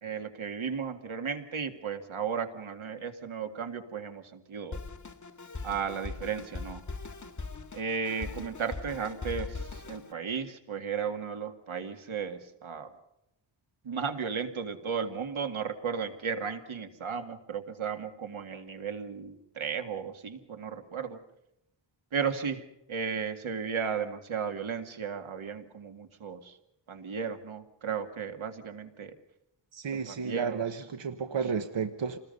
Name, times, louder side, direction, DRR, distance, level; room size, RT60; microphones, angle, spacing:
voice 1, 0.0-4.8 5.6-6.8 7.7-9.5 9.9-12.9 13.9-21.2 22.1-22.6 22.9-26.4 26.9-29.1 30.2-30.6, right 6 dB, 85° right, 6 dB, 2.3 m, -34 dB
Drum kit, 4.7-10.1, left 4 dB, 40° left, 2.0 m, -40 dB
voice 2, 29.7-32.2, right 6 dB, 70° right, 7 dB, 1.3 m, -32 dB
28.0 x 20.5 x 5.4 m, 0.85 s
wide cardioid pair, 115°, 46 cm